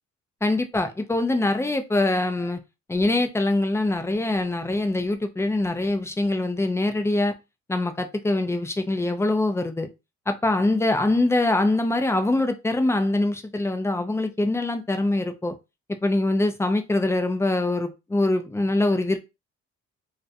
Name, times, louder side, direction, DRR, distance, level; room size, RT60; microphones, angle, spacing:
voice 1, 0.4-2.6 2.9-7.3 7.7-9.9 10.3-15.5 16.0-19.2, left 2 dB, 10° left, 0.3 m, -23 dB
2.4 x 2.0 x 2.5 m
cardioid pair, 90°, 30 cm